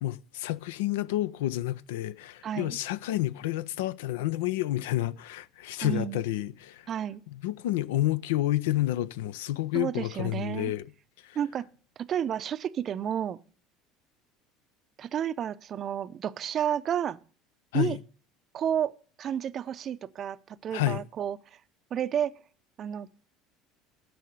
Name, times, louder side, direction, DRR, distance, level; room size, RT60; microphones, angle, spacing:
voice 1, 0.0-6.9 7.3-10.8 11.2-11.4 17.7-18.0 20.7-21.0, left 15 dB, 70° left, 0.4 m, -30 dB
voice 2, 2.4-2.8 5.8-6.2 6.9-7.2 9.7-10.7 11.4-11.7 12.0-13.4 15.0-17.2 17.7-18.0 18.5-18.9 19.2-21.4 21.9-22.3 22.8-23.1, right 9 dB, 40° right, 0.5 m, -31 dB
10.5 x 6.3 x 6.5 m
figure-of-eight pair, 65°, 0 cm